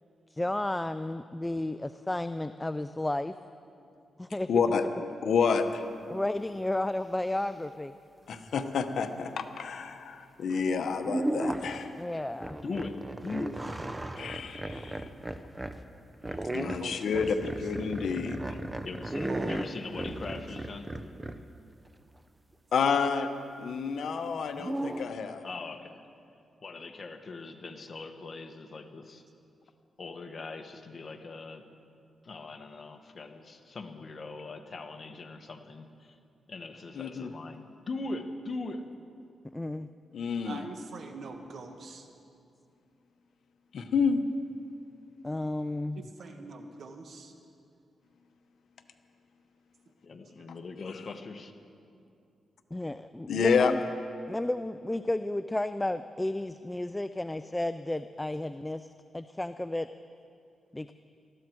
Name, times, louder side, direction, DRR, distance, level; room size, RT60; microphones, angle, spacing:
voice 1, 0.3-3.4 4.2-4.5 6.1-7.9 12.0-12.6 39.5-39.9 45.2-46.1 52.7-53.8 54.3-58.9 59.1-59.9 60.7-60.9, left 1 dB, 10° left, 11 dB, 0.3 m, -32 dB
voice 2, 4.5-4.8 5.2-5.8 8.3-11.9 14.2-15.1 16.5-18.4 22.7-23.3 23.6-25.4 37.0-37.3 40.1-40.7 43.7-44.3 53.3-53.7, left 6 dB, 70° left, 7 dB, 1.0 m, -29 dB
sound 1, 10.5-10.7 11.0-11.9 12.4-15.8 16.2-21.4 24.5-25.1, right 1 dB, 15° right, 0.7 m, -35 dB
voice 3, 12.6-13.0 13.2-13.6 18.8-20.9 25.4-26.0 26.6-29.2 30.0-31.6 32.2-36.2 36.5-38.8 50.0-51.5, left 3 dB, 40° left, 6 dB, 1.3 m, -40 dB
voice 4, 16.7-17.3 19.3-19.6 40.4-42.1 46.0-47.3, right 4 dB, 60° right, 5 dB, 1.4 m, -43 dB
19.5 x 14.0 x 4.6 m, 2.5 s
cardioid pair, 95°, 0 cm